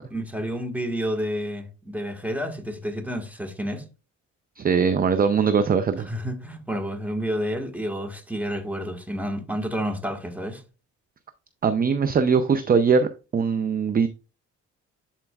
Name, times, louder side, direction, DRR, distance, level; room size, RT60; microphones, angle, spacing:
voice 1, 0.1-3.8 6.0-10.6, equal, 5° right, 1.6 m, -30 dB
voice 2, 4.6-6.1 11.6-14.1, right 5 dB, 30° right, 0.5 m, -21 dB
11.0 x 4.4 x 2.3 m
cardioid pair, 90°, 30 cm